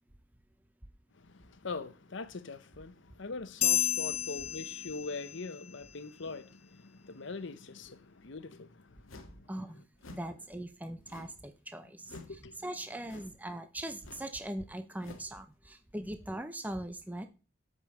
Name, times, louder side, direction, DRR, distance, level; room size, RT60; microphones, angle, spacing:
voice 1, 1.1-9.5 12.1-12.6, left 3 dB, 60° left, 0.8 m, -42 dB
sound 1, 3.6-5.5, left 10 dB, 30° left, 0.4 m, -31 dB
sound 2, 9.1-9.4 10.0-10.3 11.1-11.5 12.0-12.4 13.0-13.4 14.0-14.3 15.0-15.3, left 2 dB, 90° left, 1.5 m, -51 dB
voice 2, 9.5-9.8 10.1-17.3, right 1 dB, 10° right, 0.6 m, -41 dB
8.2 x 5.4 x 6.8 m
head